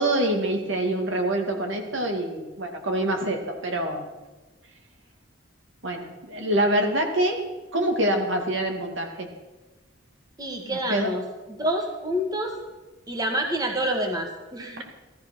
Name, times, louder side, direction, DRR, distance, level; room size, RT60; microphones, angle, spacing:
voice 1, 0.0-4.1 5.8-7.4 7.7-9.3 10.9-11.1, right 1 dB, 70° right, 3 dB, 2.3 m, -25 dB
voice 2, 10.4-11.2 11.5-12.6 13.1-14.8, right 1 dB, 20° right, 2 dB, 1.7 m, -27 dB
16.5 x 13.5 x 6.3 m, 1.2 s
head